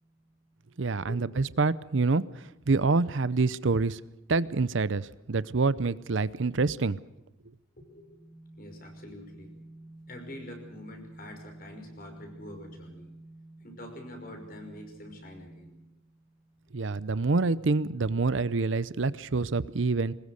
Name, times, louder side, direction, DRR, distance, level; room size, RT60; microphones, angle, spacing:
voice 1, 0.8-2.2 2.7-4.0 4.3-7.0 16.7-20.1, right 3 dB, 65° right, 18 dB, 0.7 m, -26 dB
voice 2, 7.9-15.7, equal, 45° left, 4 dB, 5.6 m, -45 dB
23.0 x 20.5 x 6.5 m, 0.91 s
head